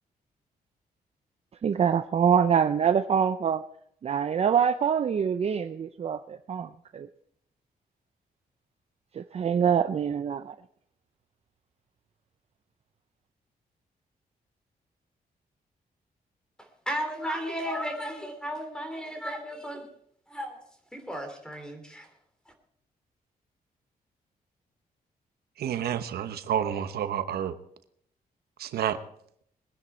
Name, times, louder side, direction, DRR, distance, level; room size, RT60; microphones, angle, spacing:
voice 1, 1.6-3.6 4.0-7.1 9.2-10.5, right 7 dB, 40° right, 10 dB, 0.5 m, -25 dB
voice 2, 16.9-19.9 20.3-20.6 20.9-22.1, equal, 5° left, 6 dB, 2.9 m, -34 dB
voice 3, 25.6-27.5 28.6-29.0, right 9 dB, 90° right, 10 dB, 0.9 m, -29 dB
21.5 x 10.0 x 4.3 m, 0.68 s
cardioid pair, 130°, 16 cm